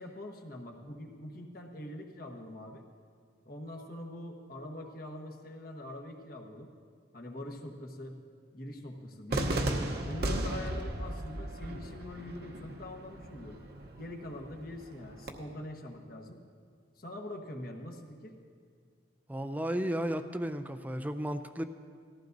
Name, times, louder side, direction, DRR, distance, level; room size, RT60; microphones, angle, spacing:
voice 1, 0.0-2.8 3.4-6.7 7.1-8.2 8.5-9.5 10.0-13.6 14.0-16.4 16.9-18.4, left 1 dB, 50° left, 1 dB, 1.2 m, -43 dB
Cheering / Fireworks, 9.3-15.3, right 1 dB, 55° right, 0.9 m, -36 dB
voice 2, 19.3-21.6, equal, 10° right, 8 dB, 0.4 m, -33 dB
18.5 x 14.5 x 2.6 m, 2.1 s
head